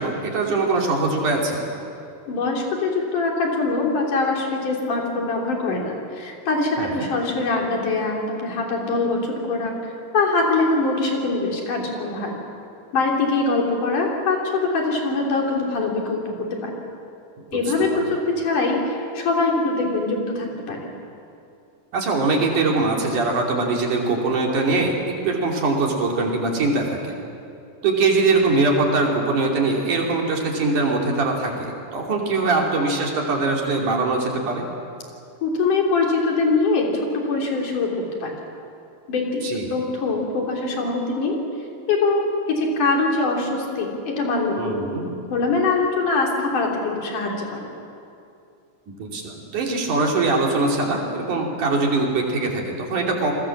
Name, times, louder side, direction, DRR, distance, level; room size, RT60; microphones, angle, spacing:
voice 1, 0.0-1.7 6.8-7.1 17.4-17.5 17.9-18.0 21.9-27.2 27.8-34.6 39.4-39.7 44.6-45.1 48.9-53.3, right 3 dB, 65° right, 0 dB, 4.4 m, -22 dB
voice 2, 2.3-12.4 12.9-16.8 17.5-20.9 35.4-36.9 37.1-38.3 39.1-41.4 41.9-44.9 45.3-47.7, left 3 dB, 65° left, 0 dB, 4.8 m, -23 dB
29.0 x 21.5 x 7.4 m, 2.5 s
omnidirectional pair, 3.9 m